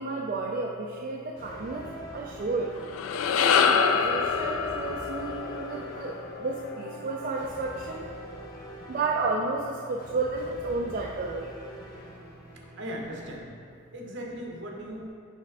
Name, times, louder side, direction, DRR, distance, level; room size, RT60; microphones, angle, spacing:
voice 1, 0.0-2.7 3.4-8.1 8.9-11.5, right 3 dB, 45° right, -1 dB, 0.4 m, -32 dB
sound 1, 1.4-13.3, equal, 45° left, 1.1 m, -44 dB
sound 2, 2.8-7.2, left 6 dB, 85° left, 0.3 m, -26 dB
voice 2, 12.5-13.6 13.9-15.1, equal, 60° right, -1 dB, 0.9 m, -39 dB
5.9 x 3.3 x 4.8 m, 2.3 s
head